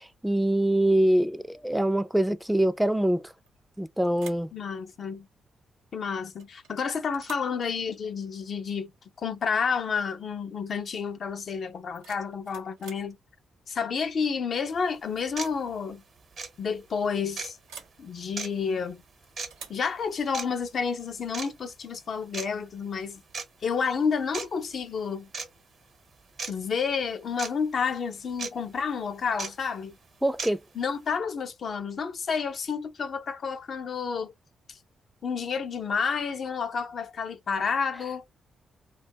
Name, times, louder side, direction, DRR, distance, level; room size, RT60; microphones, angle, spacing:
voice 1, 0.0-3.2 3.8-4.5 30.2-30.6, right 1 dB, 5° right, 0.4 m, -24 dB
sound 1, 3.4-3.8 4.1-4.5 6.4-6.7 7.1-7.6 9.4-9.6 9.9-10.3 11.7-13.1 14.6-14.9 15.3-15.6 15.9-16.0 17.7-18.0 19.5-19.9, right 6 dB, 80° right, 0.6 m, -48 dB
voice 2, 4.5-5.3 5.9-8.9 9.2-13.2 13.7-16.0 16.6-17.6 18.0-19.0 19.7-23.2 23.6-25.3 26.5-30.0 30.7-34.3 34.7-34.8 35.2-38.2, left 6 dB, 55° left, 0.4 m, -30 dB
sound 2, 14.6-14.7 15.4-15.5 16.3-16.5 17.4-17.5 18.4-18.5 19.4-19.5 20.3-20.5 21.3-21.5 22.3-22.5 23.3-23.4 24.3-24.5 25.3-25.5 26.4-26.5 27.4-27.5 28.4-28.5 29.4-29.5 30.4-30.5, right 4 dB, 55° right, 0.9 m, -34 dB
2.2 x 2.1 x 2.7 m
hypercardioid pair, 40°, 0 cm